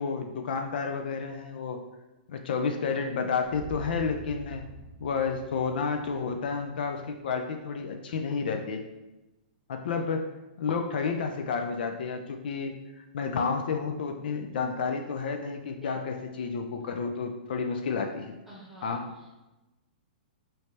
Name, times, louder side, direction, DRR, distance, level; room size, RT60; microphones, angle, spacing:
voice 1, 0.0-1.8 2.3-4.6 5.0-8.8 9.7-10.3 10.6-18.4 18.8-19.1, left 5 dB, 70° left, 5 dB, 0.3 m, -31 dB
sound 1, 3.4-7.5, right 1 dB, 40° right, 0.5 m, -46 dB
voice 2, 15.8-16.3 18.5-19.4, right 1 dB, 5° right, -6 dB, 0.8 m, -50 dB
3.2 x 2.7 x 3.2 m, 1.0 s
hypercardioid pair, 145°, 5 cm